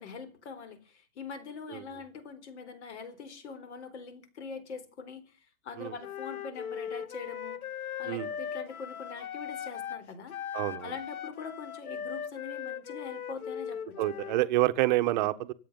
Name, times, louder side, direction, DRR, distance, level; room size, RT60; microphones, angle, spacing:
voice 1, 0.0-7.6 8.0-10.3 10.8-14.0, left 5 dB, 50° left, 4.2 m, -43 dB
Wind instrument woodwind instrument, 6.0-10.0 10.3-14.5, left 8 dB, 90° left, 1.3 m, -39 dB
voice 2, 10.5-10.9 14.0-15.5, right 17 dB, 35° right, 1.2 m, -27 dB
24.5 x 8.6 x 5.5 m
hypercardioid pair, 155°, 42 cm